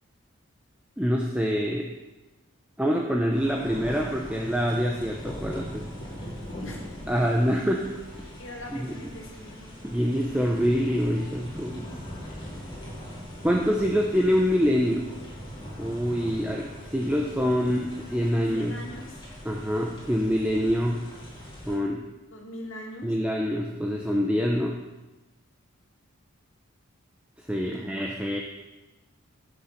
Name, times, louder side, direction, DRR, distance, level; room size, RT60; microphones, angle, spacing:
voice 1, 1.0-1.9 2.8-5.9 7.1-7.9 8.7-8.9 9.9-12.0 13.4-15.1 15.8-18.8 19.4-21.0 21.7-22.1 23.0-24.8 27.4-28.4, equal, 5° right, 0 dB, 0.8 m, -25 dB
sound 1, 3.3-21.8, equal, 25° left, 3.3 m, -41 dB
voice 2, 8.4-10.0 18.5-19.3 22.3-23.1 27.7-27.9, left 1 dB, 65° left, 0 dB, 2.5 m, -42 dB
15.0 x 6.9 x 5.9 m, 1.1 s
head